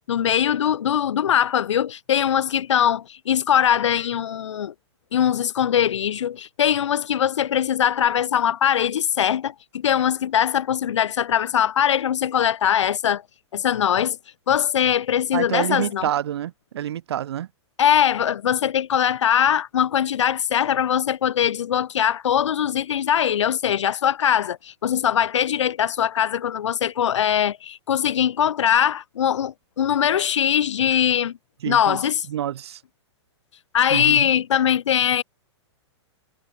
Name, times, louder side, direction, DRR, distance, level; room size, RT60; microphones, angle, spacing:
voice 1, 0.1-4.7 5.1-13.2 13.5-14.2 14.5-16.1 17.8-31.3 31.7-32.3 33.7-35.2, left 9 dB, 85° left, 1.9 m, -21 dB
voice 2, 15.3-17.5 31.6-32.0 32.3-32.8 33.9-34.2, right 11 dB, 60° right, 2.6 m, -27 dB
hypercardioid pair, 170°, 15 cm